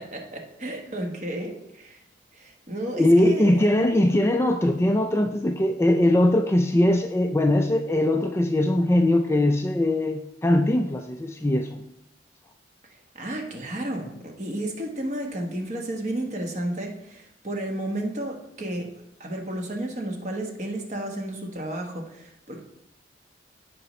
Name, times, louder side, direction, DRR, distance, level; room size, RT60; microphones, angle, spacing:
voice 1, 0.0-2.0 2.3-3.8 12.9-18.9 19.2-22.6, right 1 dB, 40° right, 2 dB, 1.2 m, -32 dB
voice 2, 3.0-11.8, left 1 dB, 15° left, 5 dB, 0.3 m, -21 dB
14.5 x 5.2 x 3.1 m, 0.84 s
head